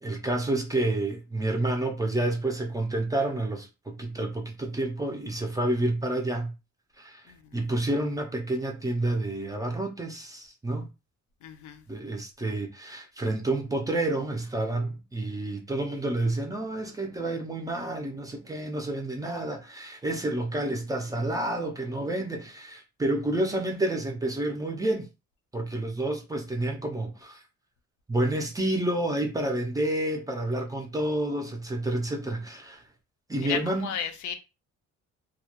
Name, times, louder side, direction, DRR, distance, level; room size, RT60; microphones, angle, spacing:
voice 1, 0.0-6.5 7.0-7.2 7.5-10.9 11.9-25.1 25.5-27.4 28.1-32.8 33.3-33.9, right 1 dB, 10° right, 0.4 m, -29 dB
voice 2, 7.3-7.6 11.4-11.8 33.4-34.3, left 8 dB, 75° left, 0.6 m, -34 dB
2.2 x 2.1 x 2.9 m
cardioid pair, 130°, 30 cm